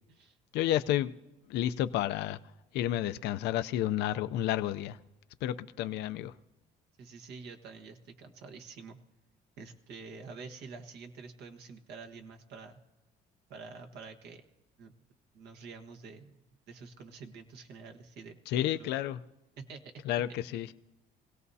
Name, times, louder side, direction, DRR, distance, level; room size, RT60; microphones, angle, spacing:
voice 1, 0.5-1.1 1.5-2.4 2.7-5.0 5.4-6.3 18.5-19.2 20.0-20.7, left 12 dB, 85° left, 0.6 m, -30 dB
voice 2, 7.0-9.0 9.6-12.8 13.5-14.4 14.8-14.9 15.3-16.4 16.7-18.4 18.7-18.9 19.6-19.9, right 4 dB, 75° right, 1.4 m, -47 dB
25.0 x 17.0 x 2.8 m
cardioid pair, 110°, 17 cm